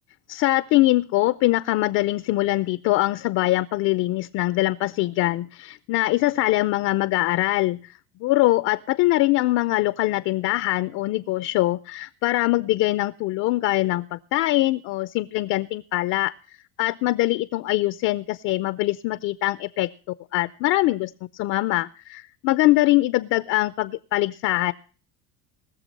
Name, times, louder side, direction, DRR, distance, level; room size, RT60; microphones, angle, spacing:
voice 1, 0.3-7.9 8.2-16.3 16.8-19.9 20.3-24.7, left 18 dB, 55° left, 14 dB, 0.5 m, -23 dB
19.5 x 6.9 x 5.3 m, 0.41 s
cardioid pair, 140°, 31 cm